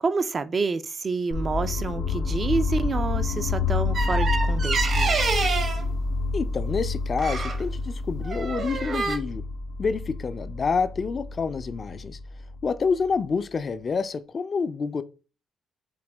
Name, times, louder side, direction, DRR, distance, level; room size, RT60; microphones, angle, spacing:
voice 1, 0.0-5.2, right 4 dB, 40° right, 0.4 m, -28 dB
sound 1, 1.3-13.2, left 3 dB, 85° left, 0.6 m, -28 dB
sound 2, 3.9-5.9 7.2-7.6 8.2-9.2, right 4 dB, 55° right, 1.0 m, -27 dB
voice 2, 6.3-9.4 9.8-12.2 12.6-15.0, left 5 dB, 40° left, 0.4 m, -28 dB
4.9 x 2.7 x 3.4 m
cardioid pair, 90°, 0 cm